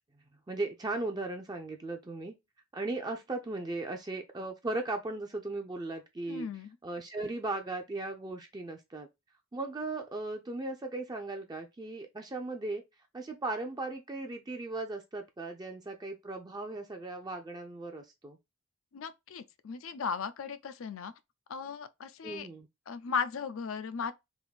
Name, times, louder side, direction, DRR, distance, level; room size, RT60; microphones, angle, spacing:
voice 1, 0.5-2.3 2.7-6.5 6.8-9.1 9.5-12.8 13.1-18.4 22.2-22.7, right 2 dB, 20° right, 0.4 m, -37 dB
voice 2, 6.3-6.8 18.9-21.1 21.5-22.5 22.9-24.1, left 6 dB, 75° left, 0.5 m, -36 dB
3.6 x 2.6 x 3.9 m
head